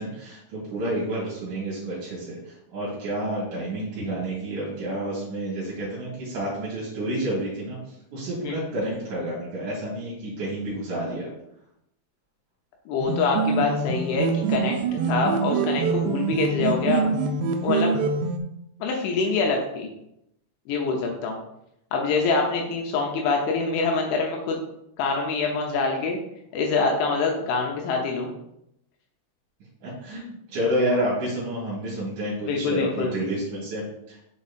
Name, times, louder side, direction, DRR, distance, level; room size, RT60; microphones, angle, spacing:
voice 1, 0.0-7.8 8.1-11.3 29.8-34.2, right 1 dB, 45° right, -8 dB, 3.2 m, -29 dB
voice 2, 12.9-17.0 17.6-17.9 18.8-19.9 20.7-21.4 21.9-24.6 25.0-26.2 26.5-28.3 32.5-33.1, left 4 dB, 75° left, 1 dB, 3.1 m, -25 dB
sound 1, 13.0-18.4, right 5 dB, 90° right, 2.5 m, -25 dB
7.1 x 5.0 x 4.2 m, 0.79 s
omnidirectional pair, 6.0 m